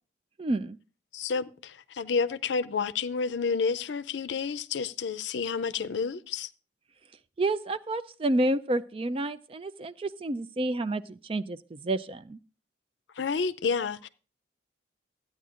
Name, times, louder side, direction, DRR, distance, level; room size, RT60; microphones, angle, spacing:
voice 1, 0.4-0.8 7.4-12.4, right 2 dB, 30° right, 0.4 m, -29 dB
voice 2, 1.1-6.5 13.2-14.1, left 5 dB, 75° left, 0.5 m, -30 dB
14.0 x 9.2 x 2.5 m
head